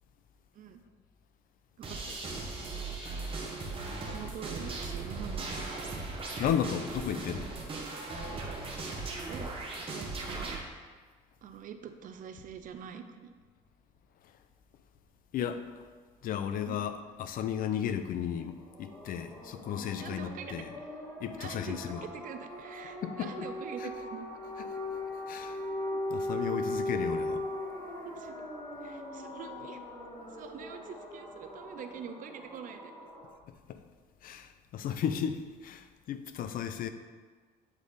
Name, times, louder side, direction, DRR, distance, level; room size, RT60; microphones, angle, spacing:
sound 1, 1.8-10.6, right 3 dB, 30° right, 1.1 m, -38 dB
voice 1, 1.8-2.2 3.4-3.7 4.0-5.8 9.3-9.5 9.9-10.6 11.4-13.3 16.7-16.8 20.0-20.9 21.3-24.3 25.9-26.0 28.0-28.3 28.8-29.8 30.3-33.1, right 7 dB, 50° right, 8 dB, 0.5 m, -45 dB
voice 2, 3.0-3.3 6.4-7.5 14.2-14.3 15.3-15.9 16.2-20.7 21.2-22.1 23.0-23.3 23.8-23.9 25.3-25.6 26.1-27.5 33.7-33.8 34.2-36.9, left 9 dB, 55° left, 10 dB, 0.5 m, -34 dB
sound 2, 18.5-33.3, left 1 dB, 20° left, 1.6 m, -39 dB
7.4 x 3.9 x 3.3 m, 1.5 s
cardioid pair, 110°, 17 cm